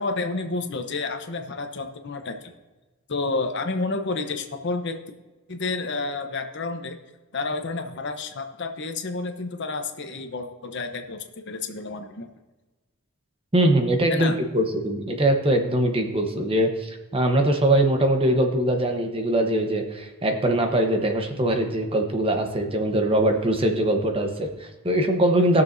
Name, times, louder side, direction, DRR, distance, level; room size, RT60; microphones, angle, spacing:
voice 1, 0.0-2.5 3.1-5.0 5.5-7.0 7.3-12.3 14.1-14.4, left 3 dB, 55° left, 6 dB, 0.9 m, -30 dB
voice 2, 13.5-25.6, right 1 dB, 25° right, 4 dB, 1.0 m, -22 dB
20.0 x 6.8 x 2.7 m, 1.2 s
head